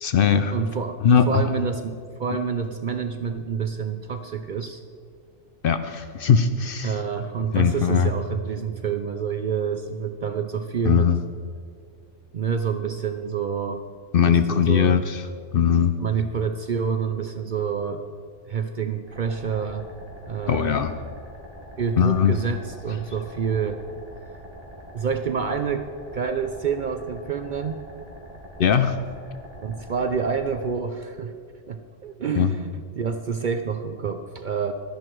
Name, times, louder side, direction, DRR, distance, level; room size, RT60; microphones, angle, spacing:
voice 1, 0.0-0.6 1.0-1.5 5.6-7.0 7.5-8.1 10.8-11.2 14.1-15.2 15.5-15.9 20.5-20.9 22.0-22.3 28.6-28.9 32.4-32.5, left 7 dB, 60° left, 10 dB, 0.7 m, -20 dB
voice 2, 0.5-1.0 1.3-4.8 6.8-11.1 12.3-13.8 14.3-15.0 16.0-18.0 18.5-19.9 20.3-20.7 21.8-23.8 24.9-27.8 29.6-31.3 31.7-32.7 33.0-34.7, right 6 dB, 55° right, 8 dB, 0.6 m, -28 dB
sound 1, 19.1-30.6, equal, 30° right, 2.8 m, -44 dB
12.5 x 10.5 x 4.6 m, 2.2 s
omnidirectional pair, 1.2 m